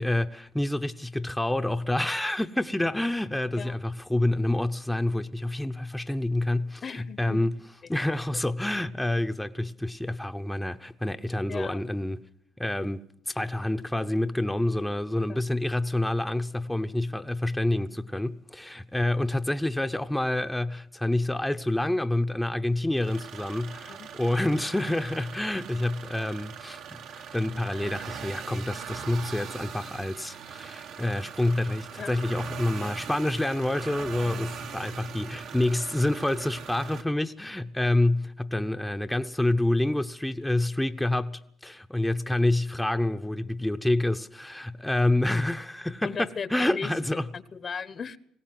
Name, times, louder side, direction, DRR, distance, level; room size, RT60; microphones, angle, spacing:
voice 1, 0.0-7.5 7.9-12.2 12.6-47.3, left 1 dB, 5° left, 0.8 m, -28 dB
voice 2, 6.8-7.4 11.5-11.8 15.3-15.4 23.9-24.1 32.0-32.1 34.2-34.5 46.0-48.2, left 6 dB, 45° left, 1.1 m, -37 dB
sound 1, 22.9-37.0, right 7 dB, 70° right, 1.4 m, -41 dB
21.0 x 17.5 x 7.7 m
cardioid pair, 85°, 0 cm